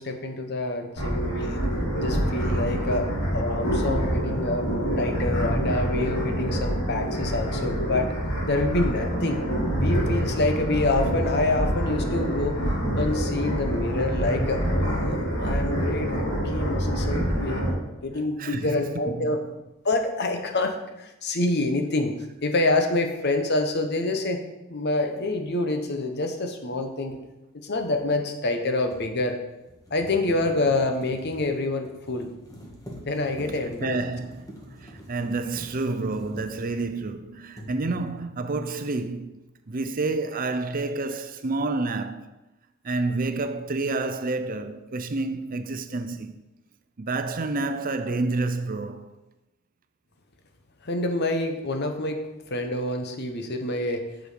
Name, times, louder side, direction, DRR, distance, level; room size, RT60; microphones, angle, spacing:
voice 1, 0.0-1.6 2.0-8.1 8.5-9.4 9.7-12.6 13.0-17.6 18.0-19.4 19.8-22.1 22.4-24.4 24.7-27.2 27.6-29.3 29.9-32.3 33.1-34.0 50.8-52.2 52.5-54.1, left 2 dB, 55° left, 1.0 m, -27 dB
sound 1, 1.0-17.7, equal, 80° left, 3.4 m, -26 dB
voice 2, 18.4-18.7 19.0-19.4 33.8-39.4 39.7-42.3 42.8-46.3 47.0-49.1, right 3 dB, 45° right, 0.6 m, -29 dB
sound 2, 25.2-25.3 28.4-37.1 37.5-38.3, equal, 15° left, 1.7 m, -45 dB
8.1 x 6.3 x 5.0 m
head